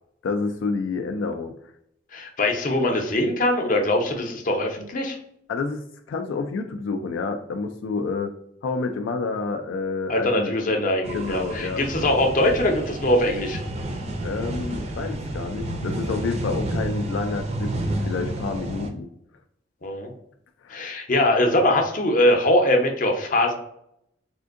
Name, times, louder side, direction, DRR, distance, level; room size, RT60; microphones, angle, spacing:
voice 1, 0.2-1.5 5.5-8.3 8.6-10.5 11.1-11.8 14.2-17.7 18.0-19.1 20.6-20.8, left 4 dB, 90° left, 5 dB, 0.3 m, -29 dB
voice 2, 2.1-5.2 10.1-13.6 19.8-20.1 20.7-23.5, left 1 dB, 45° left, 3 dB, 0.6 m, -22 dB
sound 1, 11.0-18.9, right 1 dB, 35° right, 0.4 m, -30 dB
3.6 x 2.5 x 2.4 m, 0.76 s
head